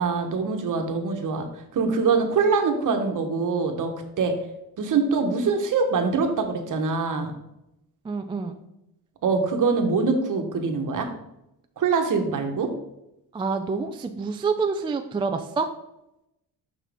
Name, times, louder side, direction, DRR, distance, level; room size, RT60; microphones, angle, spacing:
voice 1, 0.0-4.3 4.8-7.3 9.2-11.1 11.8-12.7, right 4 dB, 50° right, 5 dB, 1.2 m, -24 dB
voice 2, 8.0-8.6 13.3-15.7, right 4 dB, 15° right, 6 dB, 0.3 m, -27 dB
6.1 x 5.9 x 3.5 m, 0.86 s
cardioid pair, 110°, 40 cm